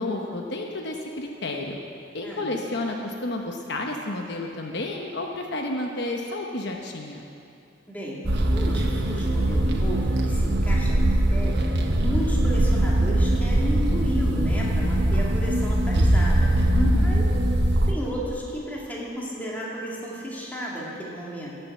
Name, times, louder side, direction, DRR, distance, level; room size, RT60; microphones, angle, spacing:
voice 1, 0.0-1.8 2.1-7.2 16.8-17.2, left 2 dB, 60° left, 2 dB, 1.0 m, -31 dB
voice 2, 7.9-8.2 8.5-17.4 17.9-21.5, equal, 10° left, -5 dB, 2.4 m, -33 dB
sound 1, 8.2-17.9, right 1 dB, 60° right, 1.1 m, -21 dB
16.5 x 6.9 x 7.4 m, 2.5 s
head